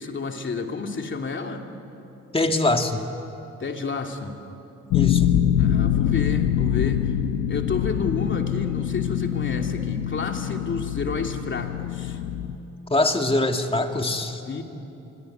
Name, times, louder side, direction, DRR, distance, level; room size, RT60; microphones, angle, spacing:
voice 1, 0.0-1.6 3.6-4.3 5.6-7.1 7.5-12.2 14.5-14.6, left 4 dB, 40° left, 3 dB, 2.8 m, -30 dB
voice 2, 2.3-3.0 4.9-5.3 12.9-14.4, left 2 dB, 20° left, 5 dB, 2.2 m, -23 dB
sound 1, 4.9-12.6, left 10 dB, 80° left, 1.0 m, -24 dB
26.0 x 22.5 x 9.3 m, 2.9 s
cardioid pair, 90°, 30 cm